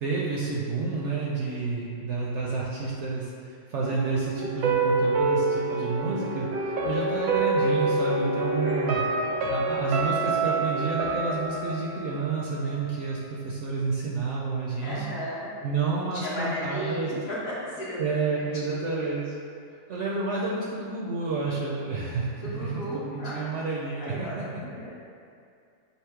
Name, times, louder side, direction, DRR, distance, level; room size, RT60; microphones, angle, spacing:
voice 1, 0.0-9.0 9.5-15.1 15.6-17.1 18.0-19.3 19.9-24.4, right 4 dB, 65° right, -4 dB, 0.7 m, -30 dB
sound 1, 3.8-12.8 13.1-13.2, right 3 dB, 85° right, 1.1 m, -27 dB
voice 2, 8.7-9.5 14.8-15.5 16.1-18.1 18.6-19.1 22.4-23.5 24.0-24.3 24.6-24.9, equal, 65° left, -9 dB, 1.6 m, -35 dB
5.5 x 2.0 x 4.4 m, 2.4 s
omnidirectional pair, 1.6 m